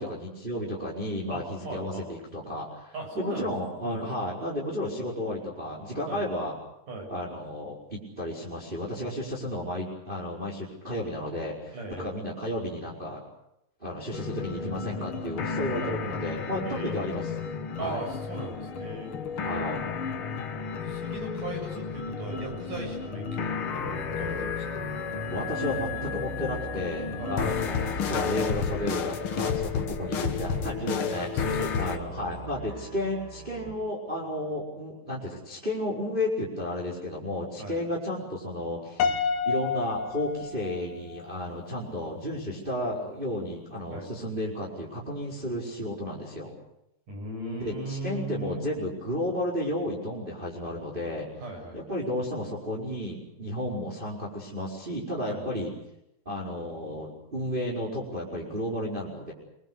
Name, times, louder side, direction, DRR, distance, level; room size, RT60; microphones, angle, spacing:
voice 1, 0.0-6.5 7.1-13.2 13.8-17.2 17.8-18.0 19.4-19.8 25.2-31.4 31.8-46.5 47.6-51.3 51.7-55.7 56.2-59.3, left 1 dB, 10° right, -4 dB, 4.8 m, -33 dB
voice 2, 1.3-2.1 2.9-3.5 3.8-4.0 6.1-6.2 6.9-7.1 11.7-12.1 15.8-16.0 16.6-17.1 17.8-19.1 20.8-24.8 27.2-27.4 31.1-32.0 37.6-37.8 43.9-44.1 47.1-48.6 51.4-51.8 55.2-55.4, right 2 dB, 50° right, 2 dB, 8.5 m, -38 dB
sound 1, 14.1-32.0, left 6 dB, 65° left, 1.3 m, -32 dB
sound 2, 22.7-33.7, right 1 dB, 75° right, 9.2 m, -42 dB
Piano, 39.0-41.2, left 5 dB, 85° left, 3.3 m, -29 dB
27.5 x 23.0 x 6.5 m, 0.83 s
omnidirectional pair, 4.6 m